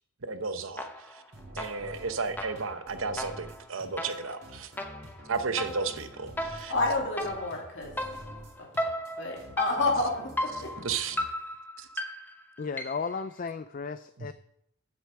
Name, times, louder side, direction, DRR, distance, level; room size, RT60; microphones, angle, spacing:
voice 1, 0.2-0.9 1.5-4.7 5.3-6.7 10.8-11.2 11.8-11.9, right 4 dB, 80° right, 0.9 m, -33 dB
sound 1, 0.8-1.2 1.6-13.2, left 1 dB, 10° left, 0.8 m, -36 dB
sound 2, 1.3-11.2, right 1 dB, 50° right, 2.9 m, -48 dB
voice 2, 6.7-7.9 8.6-8.9 9.2-10.7, left 2 dB, 60° left, 2.7 m, -29 dB
voice 3, 12.6-14.3, left 5 dB, 40° left, 0.3 m, -34 dB
8.0 x 6.7 x 7.6 m
head